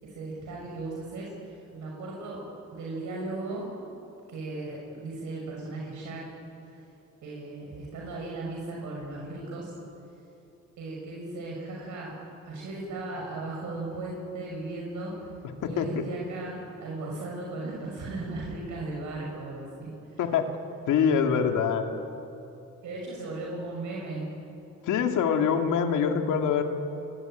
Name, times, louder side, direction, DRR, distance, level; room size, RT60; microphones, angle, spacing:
voice 1, 0.0-2.5 2.7-3.8 4.3-6.3 6.6-6.8 7.2-9.7 10.8-12.2 12.4-15.2 15.6-20.2 22.8-24.2, right 2 dB, 75° right, -2 dB, 6.2 m, -37 dB
voice 2, 20.9-21.9 24.8-26.6, left 7 dB, 85° left, 4 dB, 2.5 m, -24 dB
25.5 x 23.0 x 9.1 m, 2.8 s
cardioid pair, 90°, 30 cm